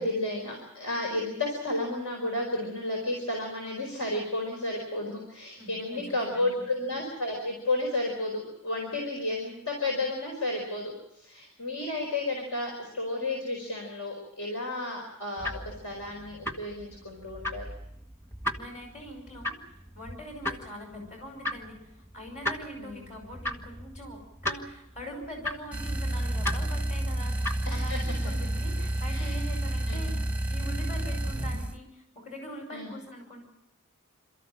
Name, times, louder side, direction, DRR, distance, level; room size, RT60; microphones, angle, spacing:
voice 1, 0.0-17.7 20.9-21.0 22.8-23.1 27.6-28.2 29.1-29.4 29.9-30.2 31.4-31.6 32.7-32.9, left 2 dB, 70° left, 0 dB, 4.8 m, -32 dB
voice 2, 5.6-6.6 18.6-19.5 20.0-30.1 30.5-33.4, equal, 35° left, 3 dB, 5.3 m, -43 dB
sound 1, 15.4-28.0, left 1 dB, 10° left, 1.6 m, -38 dB
sound 2, 25.7-31.8, right 1 dB, 5° right, 0.8 m, -30 dB
27.5 x 14.0 x 8.9 m, 0.81 s
head